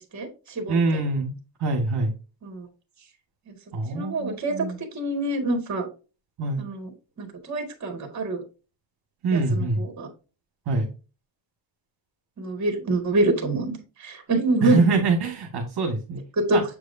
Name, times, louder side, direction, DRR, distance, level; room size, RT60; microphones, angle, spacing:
voice 1, 0.1-1.0 2.4-2.7 3.5-3.6 3.9-4.7 4.9-5.9 6.6-6.9 7.2-8.4 9.3-10.1 12.4-14.8 16.4-16.6, right 2 dB, 35° right, 5 dB, 2.2 m, -26 dB
voice 2, 0.7-1.3 1.6-2.1 3.7-4.8 6.4-6.6 9.2-9.8 10.7-10.9 14.6-16.2 16.5-16.6, right 3 dB, 55° right, 1 dB, 1.7 m, -24 dB
7.7 x 4.7 x 2.7 m, 0.32 s
cardioid pair, 135°, 47 cm